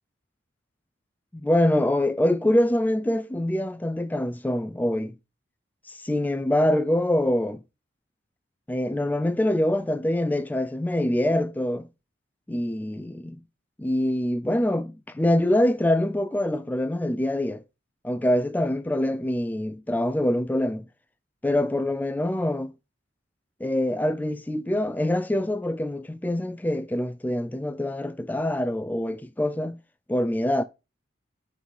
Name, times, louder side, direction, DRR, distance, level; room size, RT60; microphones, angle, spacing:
voice 1, 1.3-5.2 5.9-7.6 8.7-11.9 12.5-13.4 13.8-17.6 18.0-20.8 21.4-22.7 23.6-29.8 30.1-30.6, left 1 dB, 10° left, 0.3 m, -25 dB
4.6 x 4.0 x 5.3 m
head